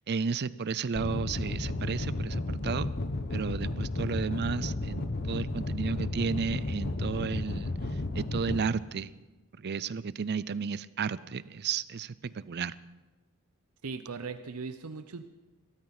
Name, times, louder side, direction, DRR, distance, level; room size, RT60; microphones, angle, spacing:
voice 1, 0.1-2.9 3.3-7.7 8.1-9.1 9.6-12.7, right 5 dB, 50° right, 18 dB, 0.5 m, -33 dB
sound 1, 1.0-8.6, left 2 dB, 50° left, 1.0 m, -33 dB
voice 2, 13.8-15.2, right 4 dB, 85° right, 8 dB, 0.7 m, -38 dB
21.5 x 14.0 x 4.1 m, 1.2 s
head